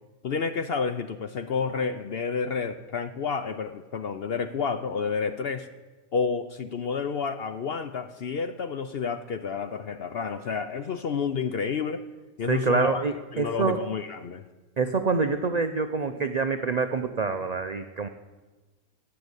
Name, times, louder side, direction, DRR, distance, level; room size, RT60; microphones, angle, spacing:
voice 1, 0.2-5.7 6.1-12.1 12.4-13.1 13.3-14.4, left 5 dB, 60° left, 10 dB, 0.7 m, -30 dB
voice 2, 12.5-13.8 14.8-18.1, right 4 dB, 60° right, 8 dB, 0.4 m, -26 dB
14.0 x 8.8 x 8.1 m, 1.2 s
omnidirectional pair, 1.6 m